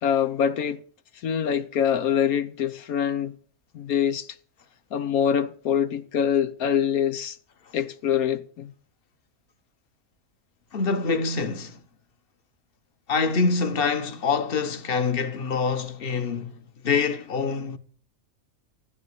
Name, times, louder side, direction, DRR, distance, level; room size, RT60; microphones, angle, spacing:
voice 1, 0.0-0.8 1.2-3.3 3.7-4.3 4.9-7.4 7.7-8.7, left 8 dB, 85° left, 1.4 m, -24 dB
voice 2, 10.7-11.8 13.1-17.8, left 4 dB, 40° left, 1.4 m, -25 dB
15.0 x 11.0 x 6.9 m
omnidirectional pair, 1.5 m